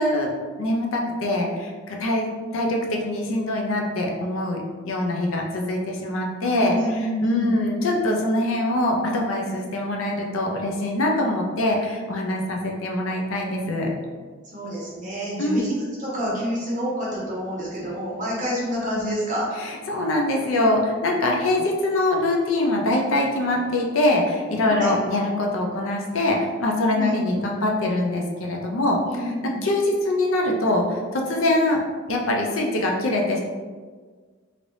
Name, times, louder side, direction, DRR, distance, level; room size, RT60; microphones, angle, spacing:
voice 1, 0.0-6.7 7.2-13.9 15.4-15.7 19.9-31.8 32.1-33.4, left 1 dB, 80° left, 0 dB, 0.6 m, -23 dB
voice 2, 6.6-7.5 14.5-19.5 24.6-24.9 26.9-27.3 29.0-29.6, equal, 35° right, -7 dB, 1.0 m, -28 dB
3.2 x 2.9 x 2.6 m, 1.5 s
head